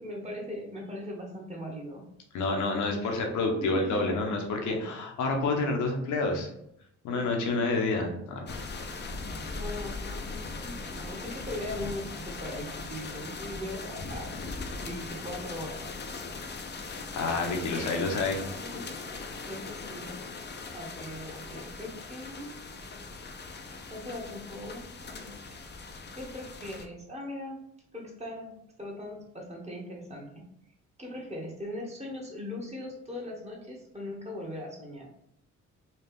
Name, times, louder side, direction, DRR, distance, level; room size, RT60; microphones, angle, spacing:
voice 1, 0.0-2.1 3.0-3.1 3.6-4.2 4.7-4.9 7.1-7.2 8.5-8.6 9.5-14.4 14.8-16.1 17.3-18.2 18.6-20.1 20.7-22.5 23.9-25.5 26.2-30.4 31.0-35.1, left 1 dB, 20° right, -1 dB, 1.3 m, -40 dB
voice 2, 2.3-6.5 7.0-8.5 16.7-18.4, left 3 dB, 75° left, 2 dB, 1.0 m, -29 dB
sound 1, 8.5-26.8, left 3 dB, 35° left, 0.6 m, -39 dB
4.2 x 2.4 x 3.6 m, 0.77 s
cardioid pair, 90°, 30 cm